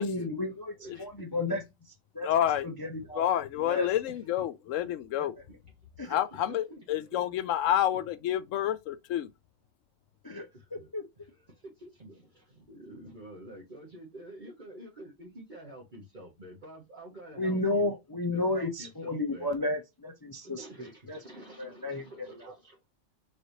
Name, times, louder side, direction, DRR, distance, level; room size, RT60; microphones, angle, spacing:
voice 1, 0.0-0.7 1.0-1.6 2.1-2.3 2.6-3.2 3.6-3.9 6.0-6.2 10.2-11.0 17.4-21.2 21.6-22.0, left 2 dB, 25° left, 0.5 m, -32 dB
voice 2, 0.8-1.6 3.0-3.1 4.1-4.2 6.3-7.2 10.5-17.9 18.3-19.5 20.4-22.8, right 1 dB, 40° right, 1.4 m, -48 dB
voice 3, 2.2-2.7 3.1-5.3 6.1-9.3, left 11 dB, 80° left, 0.9 m, -29 dB
4.1 x 3.3 x 2.7 m
omnidirectional pair, 1.3 m